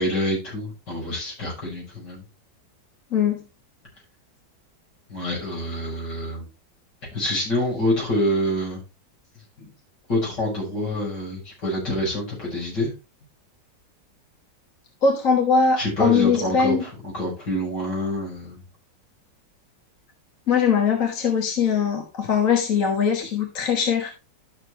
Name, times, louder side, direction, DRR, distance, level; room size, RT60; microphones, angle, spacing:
voice 1, 0.0-2.2 5.1-6.5 7.1-8.8 10.1-12.9 15.8-18.6, left 1 dB, 70° left, -3 dB, 6.5 m, -26 dB
voice 2, 3.1-3.4 10.8-10.9 15.0-16.8 20.5-24.1, left 6 dB, 50° left, 3 dB, 1.6 m, -21 dB
12.0 x 6.5 x 3.1 m, 0.26 s
omnidirectional pair, 1.9 m